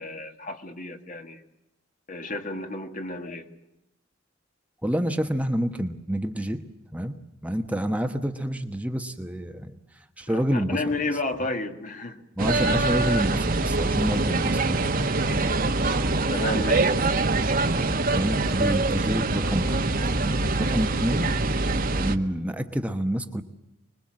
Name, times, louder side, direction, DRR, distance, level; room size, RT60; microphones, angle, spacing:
voice 1, 0.0-1.4 2.1-3.5 10.3-12.2 16.3-16.9, left 2 dB, 45° left, 6 dB, 2.1 m, -31 dB
voice 2, 4.8-6.6 6.9-7.2 7.4-9.7 10.2-10.8 12.4-15.0 15.3-15.4 18.1-19.8 20.1-21.3 21.9-23.4, equal, 5° right, 6 dB, 1.2 m, -28 dB
sound 1, 12.4-22.2, right 2 dB, 50° right, 1.4 m, -24 dB
25.5 x 21.5 x 7.6 m, 0.88 s
head